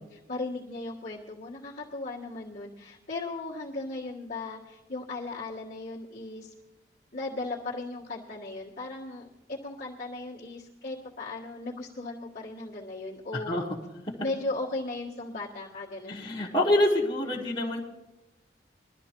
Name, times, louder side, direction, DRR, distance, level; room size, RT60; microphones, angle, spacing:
voice 1, 0.0-6.5 7.1-13.5 14.2-16.3, left 2 dB, 55° left, -9 dB, 1.5 m, -37 dB
voice 2, 13.3-13.6 14.0-14.1 16.1-17.8, left 1 dB, 25° left, -8 dB, 1.4 m, -26 dB
21.5 x 12.5 x 3.0 m, 1.0 s
head